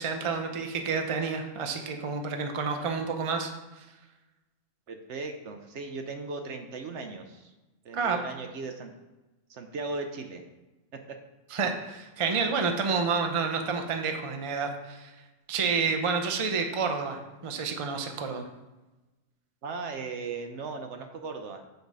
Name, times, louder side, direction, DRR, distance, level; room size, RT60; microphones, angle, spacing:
voice 1, 0.0-3.9 7.9-8.2 11.5-15.1 15.5-18.4, right 5 dB, 35° right, 4 dB, 0.5 m, -29 dB
voice 2, 2.7-3.0 4.9-7.5 7.8-8.9 9.5-10.4 19.6-21.6, right 3 dB, 65° right, 6 dB, 0.9 m, -37 dB
7.9 x 3.6 x 5.3 m, 1.1 s
omnidirectional pair, 1.4 m